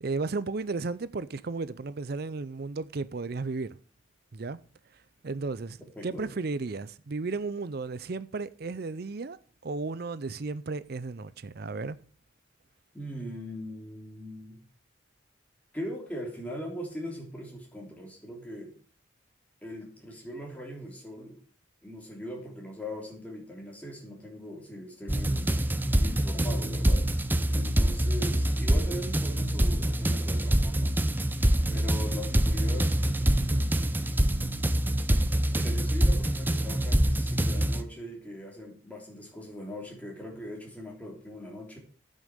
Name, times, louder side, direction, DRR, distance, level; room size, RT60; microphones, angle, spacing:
voice 1, 0.0-3.8 4.3-4.6 5.2-5.8 6.0-9.4 9.6-12.0, right 3 dB, 55° right, 0.5 m, -34 dB
voice 2, 6.0-6.3 12.9-14.6 15.7-18.7 19.6-21.4 21.8-25.5 26.0-27.1 27.5-30.9 31.7-34.7 35.5-41.8, equal, 10° left, 3.2 m, -40 dB
sound 1, 25.1-37.8, right 1 dB, 10° right, 0.6 m, -25 dB
8.9 x 6.4 x 8.0 m
head